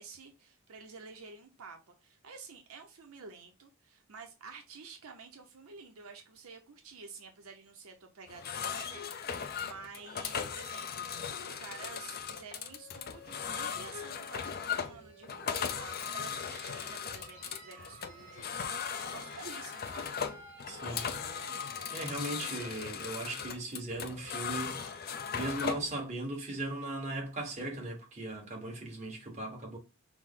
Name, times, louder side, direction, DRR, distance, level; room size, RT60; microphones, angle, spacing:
voice 1, 0.0-20.1, right 5 dB, 75° right, 0.7 m, -50 dB
sound 1, 8.3-25.9, left 7 dB, 45° left, 0.4 m, -38 dB
sound 2, 12.5-24.0, right 2 dB, 55° right, 1.9 m, -54 dB
voice 2, 20.7-21.1 21.9-25.0 25.3-29.8, right 2 dB, 30° right, 1.2 m, -38 dB
6.0 x 2.0 x 3.8 m
head